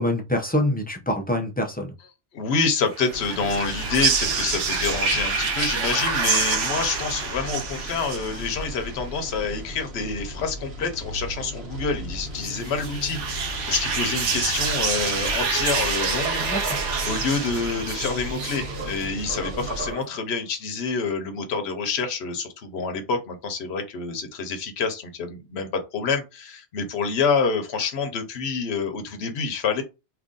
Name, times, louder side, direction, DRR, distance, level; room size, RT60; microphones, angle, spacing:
voice 1, 0.0-1.9 16.4-16.8, left 1 dB, 15° left, 0.4 m, -25 dB
voice 2, 2.3-16.4 17.0-29.8, left 5 dB, 65° left, 1.0 m, -27 dB
sound 1, 2.9-8.9 12.4-19.3, right 5 dB, 80° right, 1.0 m, -27 dB
sound 2, 3.1-19.9, right 1 dB, 65° right, 1.2 m, -36 dB
sound 3, 17.8-20.4, right 3 dB, 45° right, 1.0 m, -38 dB
3.0 x 2.5 x 3.7 m
omnidirectional pair, 1.2 m